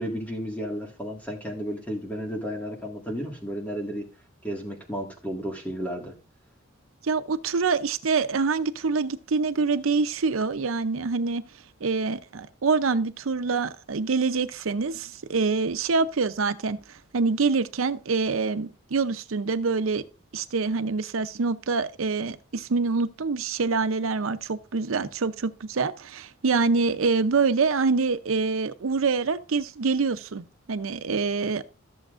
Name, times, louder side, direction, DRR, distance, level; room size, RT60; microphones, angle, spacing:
voice 1, 0.0-4.1 4.4-6.1, equal, 10° left, 1.8 m, -33 dB
voice 2, 7.0-11.4 11.8-16.8 17.1-20.0 20.3-31.6, right 4 dB, 85° right, 0.6 m, -25 dB
14.0 x 7.1 x 2.5 m
head